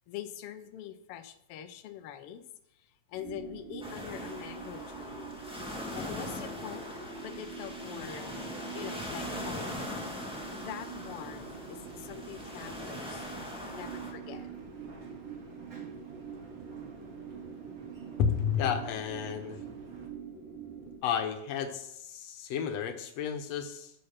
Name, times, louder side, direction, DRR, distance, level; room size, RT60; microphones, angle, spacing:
voice 1, 0.1-2.5 2.8-5.3 5.7-7.0 7.2-8.3 8.7-9.8 10.2-13.2 13.7-14.5, left 10 dB, 85° left, 9 dB, 1.3 m, -44 dB
sound 1, 3.1-21.0, right 6 dB, 85° right, 3.2 m, -45 dB
sound 2, 3.8-14.1, left 1 dB, 5° right, 0.7 m, -41 dB
sound 3, 11.1-20.1, right 3 dB, 45° right, 1.2 m, -52 dB
voice 2, 18.2-19.6 21.0-23.9, left 8 dB, 65° left, 7 dB, 1.9 m, -31 dB
10.0 x 6.7 x 5.7 m, 0.81 s
omnidirectional pair, 3.5 m